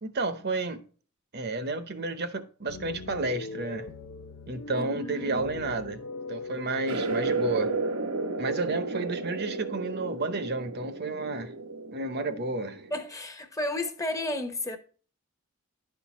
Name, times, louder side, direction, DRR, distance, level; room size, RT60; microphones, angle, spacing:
voice 1, 0.0-0.8 1.3-3.9 4.5-6.0 6.3-7.8 8.4-11.5 11.9-12.8, right 2 dB, 50° right, 0.8 m, -31 dB
sound 1, 2.7-10.2, left 3 dB, 70° left, 0.5 m, -41 dB
voice 2, 4.7-5.5 12.9-14.8, left 2 dB, 15° left, 0.8 m, -33 dB
sound 2, 6.9-13.0, right 3 dB, 85° right, 0.9 m, -33 dB
11.0 x 4.5 x 4.2 m
head